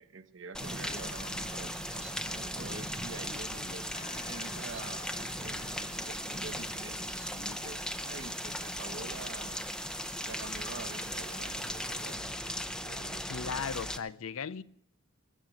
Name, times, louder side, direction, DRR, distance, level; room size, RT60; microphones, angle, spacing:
voice 1, 0.0-3.9 4.3-9.7 10.2-13.7, right 3 dB, 60° right, 1.0 m, -47 dB
Rain, 0.5-14.0, left 1 dB, 5° left, 0.6 m, -38 dB
sound 1, 0.6-12.2, right 3 dB, 30° right, 0.7 m, -47 dB
Clock, 0.9-3.2 3.9-7.3, left 5 dB, 50° left, 4.0 m, -55 dB
voice 2, 13.3-14.6, left 6 dB, 90° left, 0.6 m, -36 dB
20.5 x 7.4 x 7.7 m
head